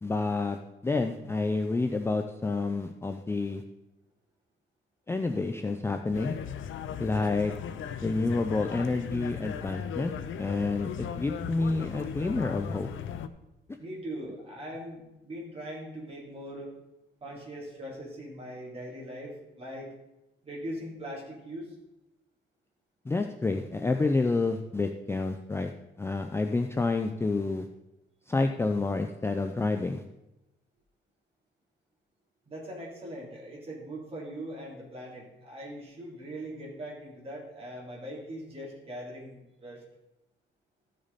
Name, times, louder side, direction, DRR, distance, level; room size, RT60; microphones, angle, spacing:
voice 1, 0.0-3.6 5.1-6.3 7.0-7.5 8.0-12.9 23.1-25.7 26.0-27.7 28.3-30.0, left 3 dB, 10° left, 5 dB, 0.4 m, -29 dB
sound 1, 6.1-13.3, left 8 dB, 80° left, 0.7 m, -37 dB
voice 2, 13.8-16.7 17.2-19.9 20.4-21.7 32.4-39.8, right 1 dB, 30° right, -4 dB, 3.4 m, -41 dB
14.0 x 6.4 x 4.1 m, 0.94 s
wide cardioid pair, 160°, 20 cm